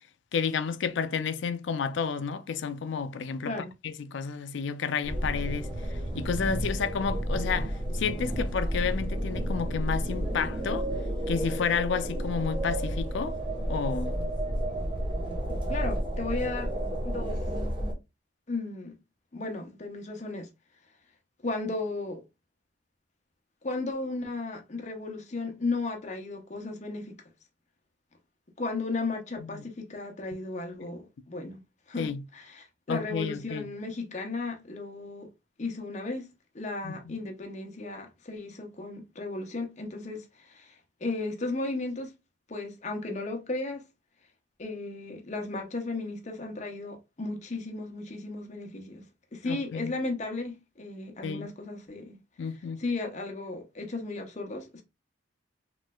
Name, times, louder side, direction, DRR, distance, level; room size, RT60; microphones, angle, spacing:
voice 1, 0.3-3.5 3.8-10.9 11.3-13.4 13.7-14.2 29.4-29.6 32.0-32.2 32.9-33.7 36.8-37.1 49.4-49.9 51.2-51.5 52.4-52.8, left 6 dB, 70° left, 0.4 m, -31 dB
sound 1, 5.0-17.9, right 1 dB, 25° right, 0.8 m, -31 dB
voice 2, 15.5-16.7 17.0-17.4 18.5-18.9 19.3-20.5 21.4-22.2 23.6-27.1 28.6-31.6 31.9-35.3 35.6-36.3 36.5-42.1 42.5-43.8 44.6-49.0 49.3-52.2 52.8-54.8, left 3 dB, 35° left, 0.7 m, -35 dB
3.1 x 3.0 x 2.2 m
head